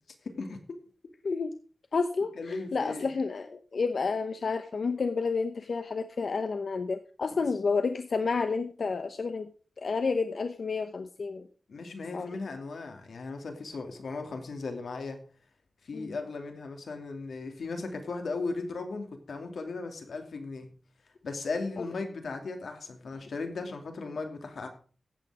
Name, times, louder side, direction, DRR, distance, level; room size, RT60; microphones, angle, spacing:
voice 1, 0.2-0.8 2.4-3.1 7.3-7.4 11.7-15.2 15.8-20.7 21.2-24.7, left 3 dB, 85° left, 5 dB, 2.6 m, -37 dB
voice 2, 1.9-9.5 9.8-11.5 12.1-12.3 15.9-16.2 21.8-21.9, left 4 dB, 60° left, 9 dB, 0.9 m, -30 dB
15.0 x 8.5 x 4.9 m, 0.40 s
wide cardioid pair, 125°, 0 cm